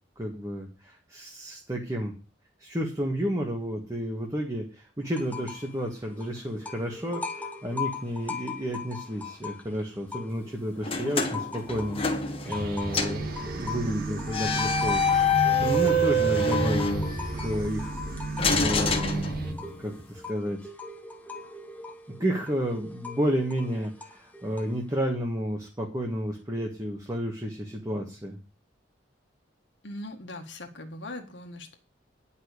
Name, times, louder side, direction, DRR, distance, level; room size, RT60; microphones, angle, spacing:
voice 1, 0.2-2.1 2.6-15.0 15.6-19.3 19.8-20.7 22.2-28.4, equal, 20° right, 1 dB, 1.6 m, -31 dB
sound 1, 5.1-5.7 6.0-10.7 11.1-24.9, left 4 dB, 10° left, 1.2 m, -40 dB
sound 2, 10.8-12.7 12.9-13.3 14.3-17.5 18.4-19.8, left 2 dB, 30° left, 1.6 m, -26 dB
sound 3, 12.5-19.5, right 2 dB, 50° right, 1.7 m, -33 dB
voice 2, 29.8-31.7, left 1 dB, 70° left, 4 dB, 1.7 m, -40 dB
10.0 x 5.7 x 8.2 m, 0.36 s
head